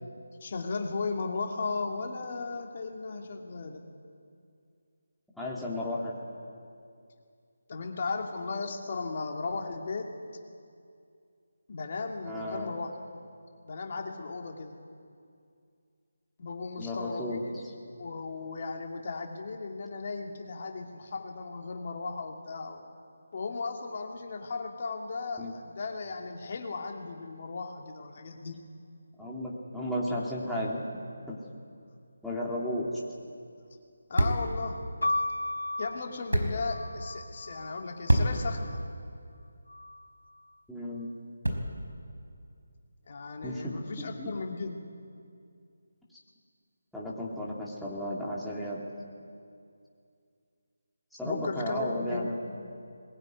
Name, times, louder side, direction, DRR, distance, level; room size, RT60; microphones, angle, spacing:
voice 1, 0.4-3.8 7.7-10.2 11.7-12.9 13.6-14.8 16.4-17.6 18.0-22.8 23.3-28.7 34.1-34.8 35.8-38.8 43.1-44.8 51.2-52.6, left 4 dB, 45° left, 2 dB, 2.5 m, -36 dB
voice 2, 5.3-6.2 12.2-12.7 16.8-17.4 25.4-25.5 29.2-31.0 31.3-31.4 32.2-32.9 40.7-41.1 43.4-44.3 46.9-48.9 51.2-52.4, left 1 dB, ahead, -8 dB, 3.1 m, -34 dB
sound 1, 32.9-42.0, right 1 dB, 85° right, 5.0 m, -33 dB
sound 2, 35.0-38.9 39.7-40.4, left 1 dB, 80° left, 0.9 m, -35 dB
22.0 x 21.0 x 9.6 m, 2.4 s
figure-of-eight pair, 155°, 0 cm